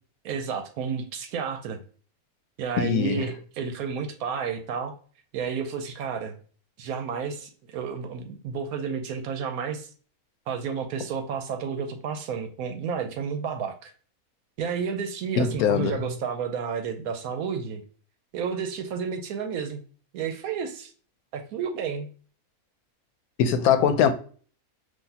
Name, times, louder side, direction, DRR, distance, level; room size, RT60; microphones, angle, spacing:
voice 1, 0.2-1.8 2.6-4.9 5.3-6.4 6.8-9.9 10.5-13.9 14.6-17.8 18.3-19.8 20.1-20.9 21.3-22.1, right 6 dB, 80° right, 1.0 m, -31 dB
voice 2, 2.8-3.2 15.4-15.9 23.4-24.1, left 7 dB, 80° left, 1.1 m, -21 dB
5.8 x 2.7 x 2.7 m
omnidirectional pair, 1.5 m